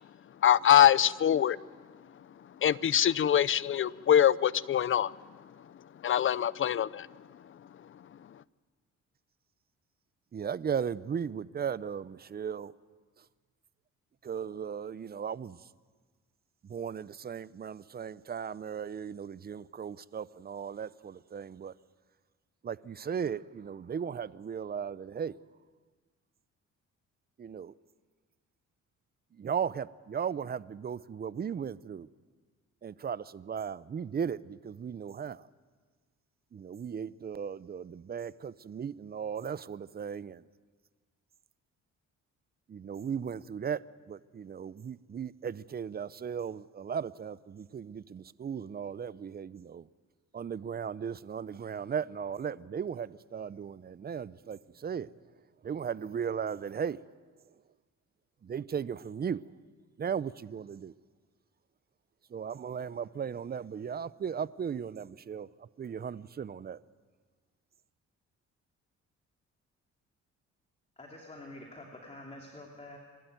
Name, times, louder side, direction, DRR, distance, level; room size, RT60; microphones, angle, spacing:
voice 1, 0.4-1.6 2.6-5.1 6.0-7.1, left 10 dB, 40° left, 0.6 m, -23 dB
voice 2, 10.3-12.7 13.2-13.3 14.2-15.6 16.6-21.7 22.6-25.4 27.4-27.7 29.3-32.1 32.8-35.5 36.5-40.4 42.7-43.8 44.1-49.9 50.3-55.1 55.6-57.1 58.4-59.4 60.0-60.9 62.3-66.8, right 7 dB, 30° right, 0.6 m, -36 dB
voice 3, 71.0-73.0, left 1 dB, 20° left, 2.8 m, -47 dB
27.5 x 12.5 x 9.2 m
cardioid pair, 90°, 30 cm